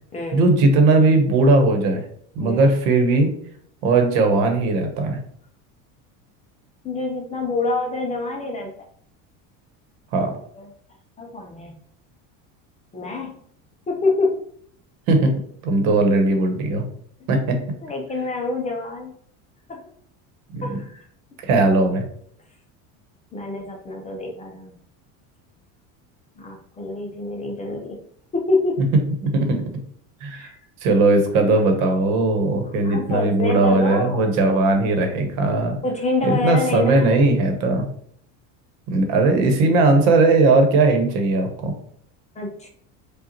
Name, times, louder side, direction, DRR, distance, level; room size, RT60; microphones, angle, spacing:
voice 1, 0.3-2.0 2.3-3.4 3.8-5.2 10.1-10.4 15.1-15.3 15.6-16.9 17.3-17.8 20.5-20.8 21.4-22.0 29.2-29.6 30.2-30.5 30.8-35.8 36.2-37.9 38.9-41.7, right 2 dB, 70° right, 4 dB, 1.1 m, -18 dB
voice 2, 6.8-8.7 10.6-10.7 11.2-11.7 12.9-13.4 13.9-14.4 17.8-19.1 19.7-19.8 20.6-21.0 21.5-21.6 23.3-24.7 26.4-28.0 28.3-28.8 30.3-30.5 31.4-31.6 32.7-34.3 35.8-37.3 42.4-42.7, left 3 dB, 20° left, 1 dB, 0.5 m, -26 dB
5.0 x 2.4 x 2.9 m, 0.63 s
cardioid pair, 145°, 38 cm